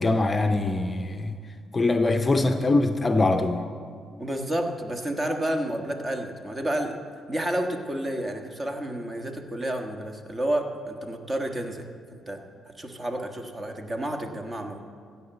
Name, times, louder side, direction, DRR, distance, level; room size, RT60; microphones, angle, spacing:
voice 1, 0.0-1.3 1.7-3.6, left 2 dB, 25° left, 6 dB, 0.6 m, -23 dB
voice 2, 4.2-7.0 7.3-11.9 12.3-14.8, right 1 dB, 25° right, 4 dB, 1.4 m, -30 dB
15.0 x 5.8 x 8.0 m, 2.1 s
cardioid pair, 90°, 0 cm